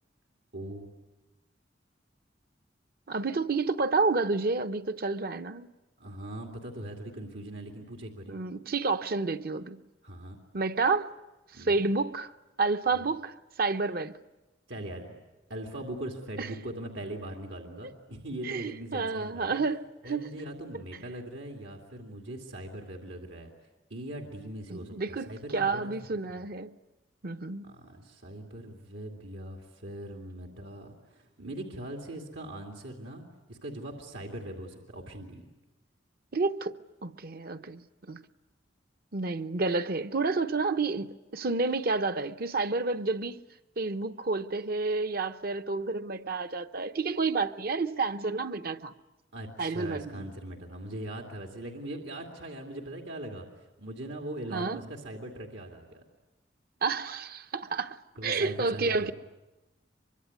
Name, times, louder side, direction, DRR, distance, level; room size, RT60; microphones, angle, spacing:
voice 1, 0.5-0.9 6.0-8.4 10.0-10.4 11.5-11.8 12.9-13.1 14.7-15.2 15.5-19.6 20.0-23.5 23.9-25.9 27.6-35.4 49.3-56.0 58.2-59.1, right 1 dB, 85° right, 2.6 m, -41 dB
voice 2, 3.1-5.7 8.3-9.8 10.5-11.1 11.5-12.3 12.6-14.2 16.4-16.5 18.4-20.3 24.7-26.7 27.2-27.7 36.3-36.7 37.0-38.2 39.1-43.4 43.8-48.9 49.6-50.3 54.5-54.8 56.8-58.0 58.2-59.1, right 3 dB, 55° right, 0.8 m, -30 dB
24.5 x 23.5 x 9.6 m
head